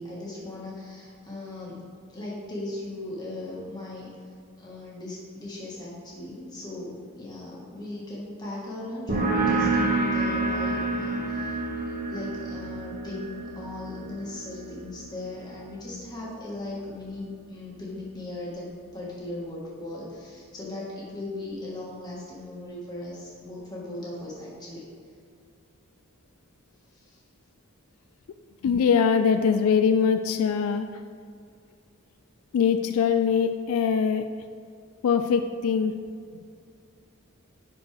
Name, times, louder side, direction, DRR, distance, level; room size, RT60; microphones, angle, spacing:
voice 1, 0.0-1.8 2.1-4.1 4.6-18.7 18.9-24.8 26.9-27.2, left 2 dB, 20° left, -6 dB, 1.6 m, -38 dB
sound 1, 9.1-16.3, right 2 dB, 40° right, 1.5 m, -29 dB
voice 2, 28.6-30.9 32.5-34.2 35.0-35.9, left 6 dB, 85° left, 8 dB, 0.3 m, -22 dB
10.0 x 4.4 x 3.4 m, 2.2 s
head